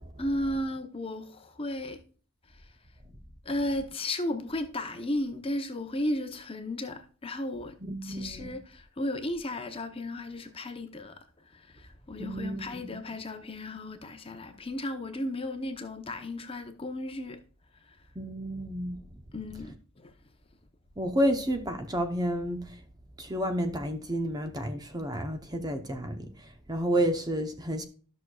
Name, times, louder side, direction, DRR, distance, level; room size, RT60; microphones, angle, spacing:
voice 1, 0.2-2.0 3.4-7.7 8.0-11.2 11.5-17.4 17.9-18.0 19.3-20.1, left 1 dB, 25° left, 0.8 m, -34 dB
voice 2, 7.8-8.5 12.2-12.8 18.2-19.0 21.0-22.7 23.2-27.8, equal, 20° right, 0.8 m, -30 dB
13.5 x 6.3 x 2.3 m
head